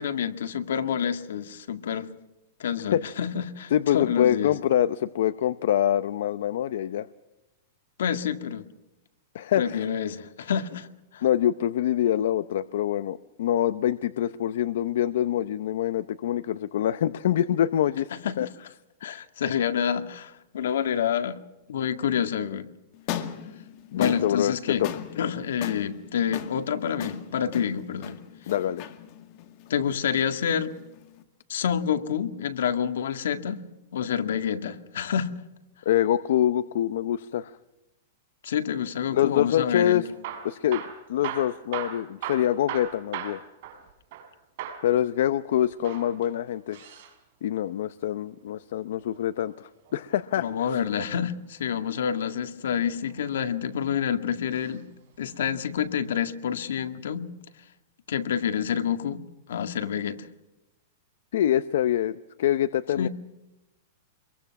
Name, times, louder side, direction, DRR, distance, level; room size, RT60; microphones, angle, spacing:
voice 1, 0.0-2.1 2.6-4.5 8.0-8.6 9.6-10.9 11.1-11.2 18.2-18.5 19.0-21.4 21.7-22.7 24.0-24.9 25.2-28.2 29.7-30.7 31.5-33.7 33.9-35.3 38.4-40.0 50.4-54.9 55.2-57.3 58.1-59.2 59.5-60.2 63.0-63.1, left 8 dB, 80° left, 8 dB, 2.0 m, -28 dB
voice 2, 3.7-7.1 9.3-9.8 11.2-18.1 18.4-18.5 23.9-24.9 28.5-28.8 35.9-37.5 39.1-40.1 40.4-40.8 41.1-43.4 44.8-46.9 47.4-50.8 61.3-63.1, left 11 dB, 65° left, 14 dB, 0.7 m, -25 dB
sound 1, 22.9-31.2, left 10 dB, 35° left, 2.1 m, -38 dB
Hammer / Drill, 40.1-44.3 44.6-44.9 45.7-47.1 48.9-50.1 51.8-52.3 53.0-53.8 54.5-54.8 55.1-55.2 55.8-55.9, right 9 dB, 50° right, 4.6 m, -38 dB
27.0 x 23.0 x 6.0 m, 0.98 s
supercardioid pair, 170°, 0 cm